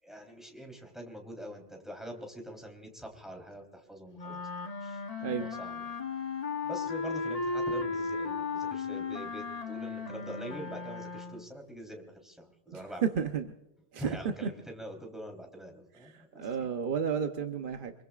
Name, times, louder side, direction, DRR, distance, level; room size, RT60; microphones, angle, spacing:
voice 1, 0.0-4.4 4.8-5.8 6.6-13.1 13.9-16.7, equal, ahead, 2 dB, 3.6 m, -44 dB
sound 1, 4.2-11.5, left 4 dB, 35° left, 1.0 m, -35 dB
sound 2, 6.9-7.2 7.6-7.9 8.3-8.6 9.0-9.3 9.7-9.8 10.4-10.6 11.2-11.3 11.9-12.0 12.7-12.8, right 5 dB, 30° right, 4.4 m, -56 dB
voice 2, 12.7-13.5 13.9-14.2 16.1-17.9, right 7 dB, 50° right, 6 dB, 1.0 m, -32 dB
25.5 x 23.0 x 2.4 m, 1.0 s
omnidirectional pair, 1.2 m